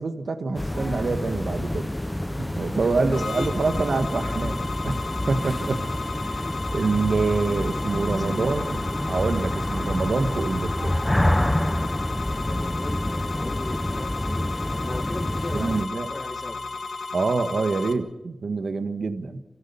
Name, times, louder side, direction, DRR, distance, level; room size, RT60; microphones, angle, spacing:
voice 1, 0.0-1.9 2.4-8.8 9.1-11.0 15.5-16.1 17.1-19.4, right 4 dB, 70° right, 9 dB, 1.6 m, -26 dB
sound 1, 0.5-15.8, left 1 dB, 15° left, 0.8 m, -28 dB
voice 2, 2.8-4.5 7.9-8.6 12.4-16.6, left 2 dB, 35° left, 7 dB, 2.1 m, -37 dB
sound 2, 3.1-17.9, left 3 dB, 75° left, 1.7 m, -34 dB
sound 3, 3.8-17.2, left 1 dB, 55° left, 2.9 m, -49 dB
29.0 x 14.5 x 7.0 m, 1.0 s
wide cardioid pair, 80°, 0 cm